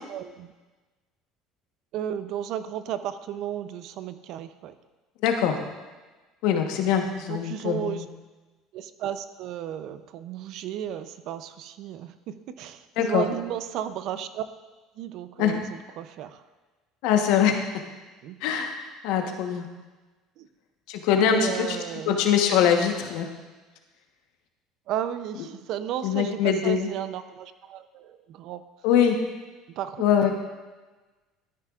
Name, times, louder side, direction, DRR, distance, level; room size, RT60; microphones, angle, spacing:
voice 1, 0.1-0.5 1.9-4.7 7.3-8.0 8.7-14.4 15.0-16.4 18.2-18.4 19.2-19.3 20.4-20.5 21.1-22.2 24.9-28.6 29.8-30.3, right 10 dB, 60° right, 12 dB, 0.5 m, -34 dB
voice 2, 5.2-5.6 6.4-8.1 13.0-13.2 15.4-15.6 17.0-17.6 18.4-18.7 19.0-19.7 20.9-21.8 22.1-23.3 26.0-26.9 28.8-29.2 30.0-30.3, left 8 dB, 75° left, 4 dB, 1.1 m, -23 dB
13.5 x 9.1 x 2.5 m, 1.2 s
cardioid pair, 125°, 0 cm